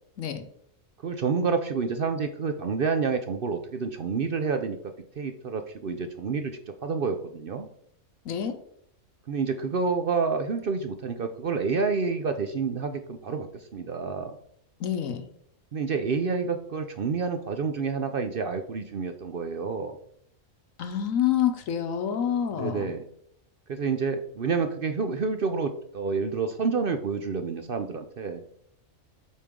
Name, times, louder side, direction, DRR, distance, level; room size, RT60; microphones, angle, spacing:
voice 1, 1.0-4.8 5.2-7.7 9.3-14.3 15.7-20.0 22.5-23.1 23.7-28.4, right 5 dB, 55° right, 7 dB, 0.7 m, -29 dB
voice 2, 8.2-8.6 14.8-15.3 20.8-22.9, left 9 dB, 80° left, 8 dB, 1.2 m, -27 dB
8.4 x 4.8 x 3.7 m, 0.68 s
omnidirectional pair, 1.4 m